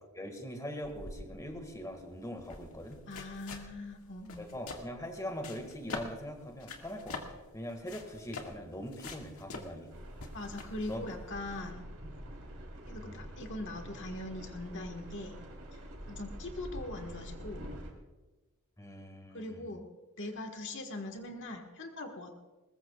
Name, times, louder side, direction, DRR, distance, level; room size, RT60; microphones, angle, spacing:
voice 1, 0.1-3.0 4.4-7.2 7.5-9.9 10.9-11.0 18.8-19.7, equal, 15° left, 4 dB, 1.8 m, -42 dB
sound 1, 0.8-11.7, left 3 dB, 75° left, 1.9 m, -46 dB
voice 2, 3.1-4.5 10.3-11.9 12.9-15.4 15.7-15.8 16.1-17.7 19.3-19.9 20.2-22.4, left 2 dB, 55° left, 4 dB, 1.6 m, -41 dB
sound 2, 9.9-17.9, equal, 75° right, 3.4 m, -46 dB
21.0 x 20.0 x 2.4 m, 1.2 s
head